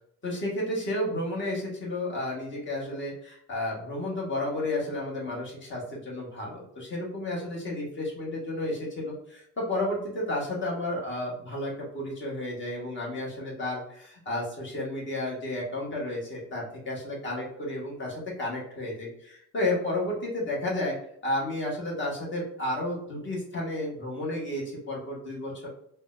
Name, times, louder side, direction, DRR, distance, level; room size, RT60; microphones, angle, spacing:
voice 1, 0.2-20.9 21.2-25.7, left 1 dB, 40° left, -4 dB, 1.3 m, -32 dB
3.7 x 2.2 x 2.4 m, 0.73 s
cardioid pair, 90°, 30 cm